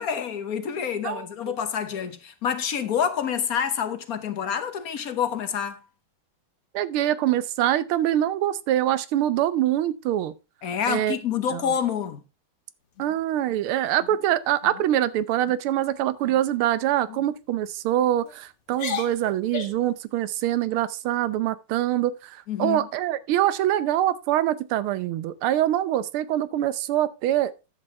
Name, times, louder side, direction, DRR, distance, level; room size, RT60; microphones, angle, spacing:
voice 1, 0.0-5.8 10.6-12.2 22.5-22.9, left 8 dB, 55° left, 1.2 m, -27 dB
voice 2, 6.7-10.3 10.9-11.2 11.5-11.6 13.0-27.5, right 12 dB, 85° right, 1.6 m, -24 dB
sound 1, 13.0-13.6 14.0-14.2 14.6-14.9 15.3-15.6 16.2-16.6 17.1-17.3 18.0-18.3 18.7-19.9, left 7 dB, 90° left, 2.4 m, -37 dB
11.0 x 7.7 x 3.4 m
omnidirectional pair, 2.3 m